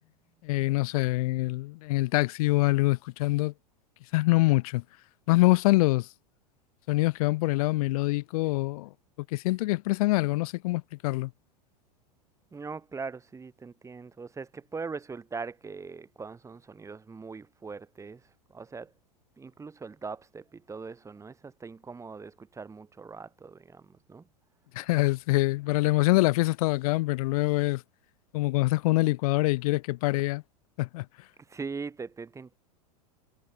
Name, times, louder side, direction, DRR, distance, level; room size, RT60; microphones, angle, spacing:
voice 1, 0.4-3.5 4.1-4.8 5.3-6.1 6.9-8.9 9.3-11.3 24.7-27.8 28.3-30.4 30.8-31.1, left 21 dB, 60° left, 0.9 m, -25 dB
voice 2, 12.5-18.2 18.5-18.9 19.4-24.2 31.5-32.6, right 4 dB, 15° right, 1.5 m, -41 dB
hypercardioid pair, 100°, 21 cm